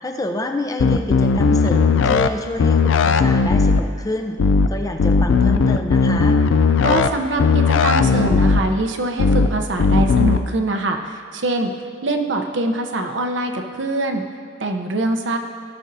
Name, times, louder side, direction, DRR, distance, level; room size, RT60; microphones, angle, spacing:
voice 1, 0.0-4.4 4.7-6.4, left 1 dB, 20° left, 4 dB, 0.6 m, -28 dB
sound 1, 0.8-2.3 2.6-3.8 4.4-4.7 5.0-7.1 7.4-8.6 9.2-9.5 9.8-10.4, left 4 dB, 75° left, 0.4 m, -16 dB
voice 2, 6.8-11.7 12.0-14.2 14.6-15.4, right 2 dB, 65° right, 4 dB, 0.8 m, -23 dB
17.0 x 6.4 x 2.7 m, 2.2 s
head